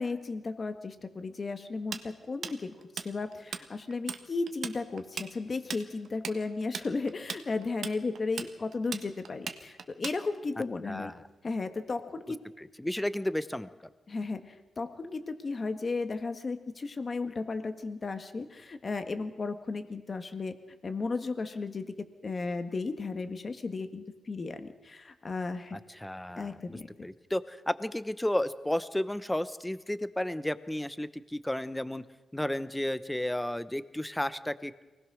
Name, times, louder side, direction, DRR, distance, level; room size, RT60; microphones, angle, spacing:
voice 1, 0.0-11.1 11.4-12.4 14.1-20.5 20.8-25.8 26.4-26.9, left 3 dB, 35° left, 8 dB, 1.8 m, -35 dB
Tools, 1.9-3.6 3.9-4.2 4.5-10.5, right 6 dB, 65° right, 1.5 m, -38 dB
voice 2, 10.8-11.2 12.6-13.7 25.9-32.0 32.3-34.8, left 1 dB, 5° left, 14 dB, 0.9 m, -33 dB
24.0 x 19.5 x 6.3 m, 1.2 s
cardioid pair, 115°, 0 cm